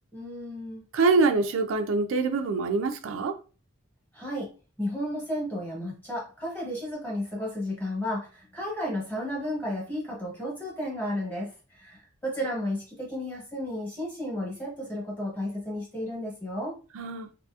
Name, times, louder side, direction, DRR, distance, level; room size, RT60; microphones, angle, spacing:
voice 1, 0.1-0.8 4.1-4.5 4.8-11.5 11.8-16.7, left 1 dB, 10° left, 1.1 m, -33 dB
voice 2, 0.9-3.4 17.0-17.3, right 3 dB, 75° right, 0.3 m, -24 dB
2.7 x 2.6 x 2.3 m
head